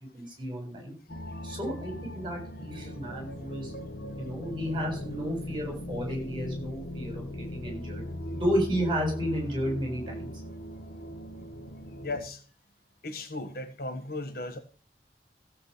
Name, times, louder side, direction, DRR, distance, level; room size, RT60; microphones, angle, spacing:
voice 1, 0.1-0.9 1.4-3.7 4.2-8.0 8.3-10.3, equal, 30° right, 7.1 m, -32 dB
sound 1, 1.1-12.2, left 1 dB, 75° left, 2.1 m, -39 dB
voice 2, 12.0-12.4 13.0-14.6, left 2 dB, 60° left, 1.6 m, -36 dB
15.5 x 5.3 x 8.4 m
head